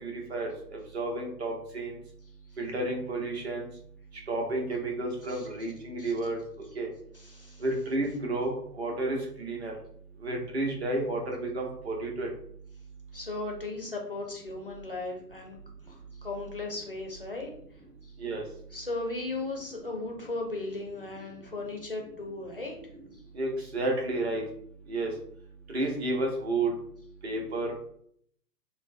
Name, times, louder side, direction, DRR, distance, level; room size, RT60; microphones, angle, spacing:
voice 1, 0.0-2.0 2.6-3.7 4.3-6.4 6.8-6.9 7.6-9.7 10.2-12.3 18.2-18.4 23.3-24.5 24.9-25.1 25.7-26.7 27.2-27.7, right 2 dB, 40° right, 1 dB, 0.7 m, -31 dB
voice 2, 7.1-7.6 13.1-15.6 15.9-17.5 18.0-18.1 18.7-22.8 23.1-23.2, left 2 dB, 40° left, 1 dB, 0.4 m, -36 dB
3.7 x 2.0 x 2.5 m, 0.65 s
figure-of-eight pair, 135°, 49 cm